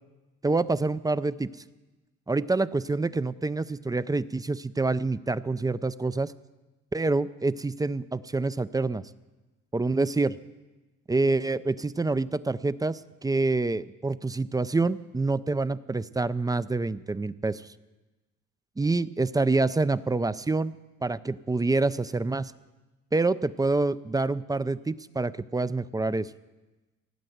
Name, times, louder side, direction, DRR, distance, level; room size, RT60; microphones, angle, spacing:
voice 1, 0.4-1.5 2.3-6.3 6.9-9.0 9.7-10.3 11.1-17.7 18.8-20.8 21.0-22.5 23.1-26.3, right 3 dB, 15° right, 16 dB, 0.4 m, -27 dB
17.5 x 9.0 x 7.9 m, 1.1 s
cardioid pair, 90°, 30 cm